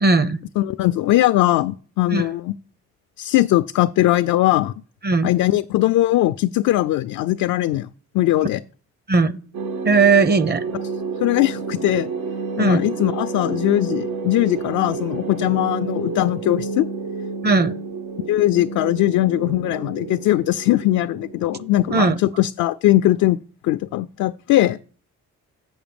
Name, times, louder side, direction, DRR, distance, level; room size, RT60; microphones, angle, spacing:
voice 1, 0.0-0.4 2.1-2.3 5.0-5.3 9.1-9.4 9.8-10.6 12.6-12.8 17.4-17.7 21.9-22.2, right 3 dB, 35° right, 0.7 m, -17 dB
voice 2, 0.6-2.5 3.2-4.7 5.2-7.9 8.1-8.6 11.2-12.1 12.6-16.9 18.3-23.4 23.6-24.8, left 15 dB, 75° left, 0.5 m, -20 dB
sound 1, 9.5-22.3, right 4 dB, 85° right, 0.9 m, -30 dB
7.0 x 6.1 x 7.0 m
cardioid pair, 90°, 30 cm